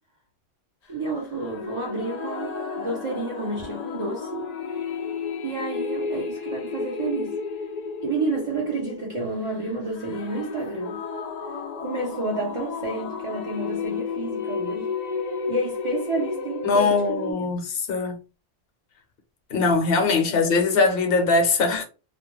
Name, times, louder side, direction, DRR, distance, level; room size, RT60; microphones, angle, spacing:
voice 1, 0.9-4.5 5.4-7.4 8.0-11.0 11.8-14.9 15.5-17.5 20.3-20.5, right 2 dB, 40° right, 0.4 m, -30 dB
sound 1, 1.3-17.3, left 5 dB, 85° left, 0.3 m, -33 dB
voice 2, 16.6-18.2 19.5-21.8, left 4 dB, 55° left, 0.8 m, -21 dB
2.3 x 2.2 x 3.0 m
omnidirectional pair, 1.3 m